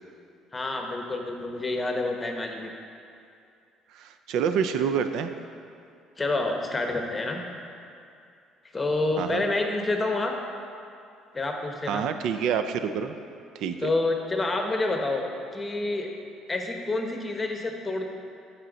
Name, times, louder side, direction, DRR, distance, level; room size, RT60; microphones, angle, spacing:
voice 1, 0.5-2.7 6.2-7.4 8.7-10.3 11.3-12.0 13.8-15.3 15.5-16.1 16.5-18.1, left 2 dB, 20° left, 3 dB, 0.9 m, -28 dB
voice 2, 3.9-5.3 9.2-9.4 11.9-13.2 13.6-13.9, right 7 dB, 70° right, 9 dB, 0.4 m, -27 dB
13.0 x 4.4 x 3.9 m, 2.5 s
cardioid pair, 110°, 0 cm